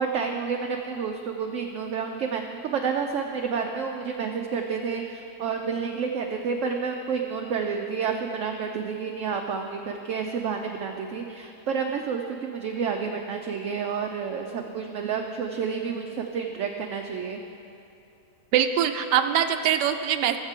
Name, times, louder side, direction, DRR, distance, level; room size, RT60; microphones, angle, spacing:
voice 1, 0.0-17.4, right 6 dB, 65° right, 3 dB, 0.8 m, -30 dB
voice 2, 18.5-20.4, right 9 dB, 85° right, 7 dB, 1.2 m, -23 dB
18.0 x 7.3 x 3.7 m, 2.7 s
omnidirectional pair, 1.8 m